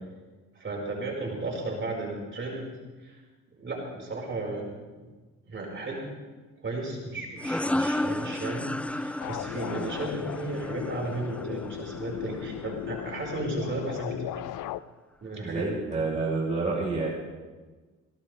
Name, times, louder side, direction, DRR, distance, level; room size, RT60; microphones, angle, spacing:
voice 1, 0.6-2.7 3.0-3.2 3.6-4.9 5.4-6.1 6.6-14.4 15.2-15.7, right 2 dB, 40° right, -2 dB, 5.2 m, -34 dB
sound 1, 7.4-12.8, left 1 dB, 5° left, 0.4 m, -33 dB
sound 2, 9.2-14.8, left 13 dB, 85° left, 0.6 m, -36 dB
voice 2, 15.4-17.1, right 3 dB, 25° right, -4 dB, 4.7 m, -28 dB
21.5 x 18.0 x 3.5 m, 1.3 s
cardioid pair, 90°, 30 cm